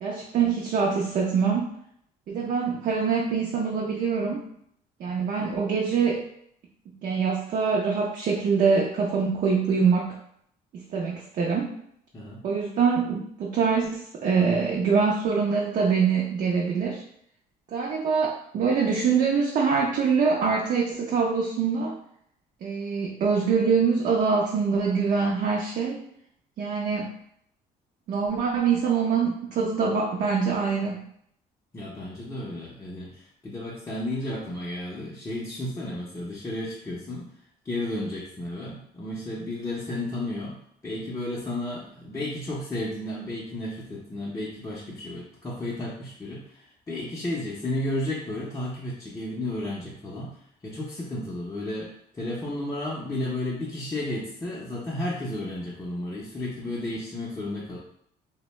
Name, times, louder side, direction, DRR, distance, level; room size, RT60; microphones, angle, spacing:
voice 1, 0.0-1.7 2.3-4.5 5.0-6.2 6.9-10.2 10.7-11.8 12.4-17.0 17.7-22.0 22.6-26.0 26.6-27.1 28.1-31.0, right 5 dB, 50° right, -1 dB, 0.4 m, -24 dB
voice 2, 31.7-37.3 37.6-50.3 50.6-57.8, left 1 dB, 15° left, -6 dB, 0.5 m, -33 dB
2.6 x 2.0 x 3.0 m, 0.69 s
cardioid pair, 110°, 17 cm